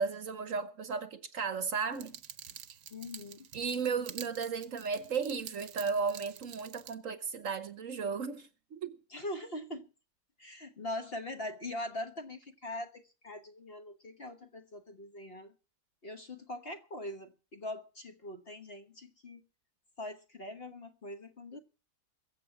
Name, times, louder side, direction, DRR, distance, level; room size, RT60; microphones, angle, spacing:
voice 1, 0.0-2.2 3.5-9.0, right 5 dB, 60° right, 1.2 m, -35 dB
sound 1, 1.9-6.9, right 10 dB, 85° right, 1.4 m, -48 dB
voice 2, 2.9-3.5 9.1-9.9 10.4-15.5 16.0-19.4 20.0-21.6, left 1 dB, 40° left, 1.3 m, -42 dB
22.0 x 7.7 x 5.8 m
omnidirectional pair, 1.7 m